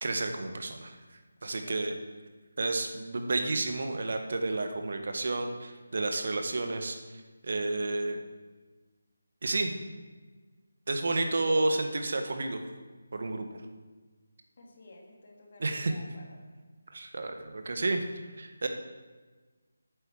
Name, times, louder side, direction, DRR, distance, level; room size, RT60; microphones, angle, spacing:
voice 1, 0.0-0.9 1.4-1.9 2.6-7.0 7.4-8.2 9.4-9.7 10.9-12.6 13.1-13.5 15.6-15.9 16.9-18.0 18.4-18.7, right 2 dB, 55° right, 5 dB, 1.5 m, -30 dB
voice 2, 1.4-1.8 14.6-16.4, left 2 dB, 50° left, -1 dB, 2.8 m, -53 dB
8.7 x 8.1 x 7.4 m, 1.4 s
figure-of-eight pair, 165°, 0 cm